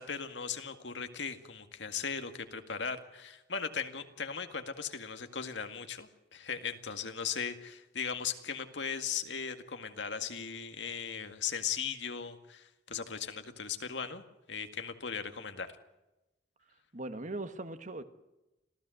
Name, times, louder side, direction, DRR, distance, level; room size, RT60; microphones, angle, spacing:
voice 1, 0.0-15.7, left 6 dB, 80° left, 7 dB, 2.1 m, -38 dB
voice 2, 16.9-18.0, right 2 dB, 45° right, 10 dB, 1.5 m, -39 dB
26.5 x 16.0 x 7.9 m, 0.98 s
head